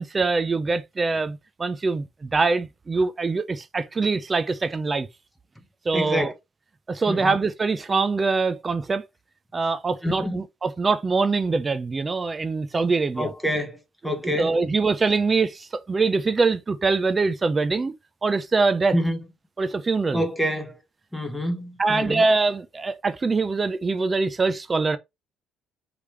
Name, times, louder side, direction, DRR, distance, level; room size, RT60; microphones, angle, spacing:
voice 1, 0.0-5.1 5.9-6.3 6.9-9.0 9.5-13.3 14.0-17.9 18.2-19.0 19.6-20.2 21.8-25.0, right 4 dB, 25° right, 0.5 m, -23 dB
voice 2, 5.9-6.3 7.1-7.3 10.0-10.4 13.2-13.8 14.0-14.5 18.9-19.2 20.1-20.8 21.1-22.2, equal, ahead, 1.2 m, -26 dB
5.0 x 3.3 x 3.2 m
cardioid pair, 115°, 0 cm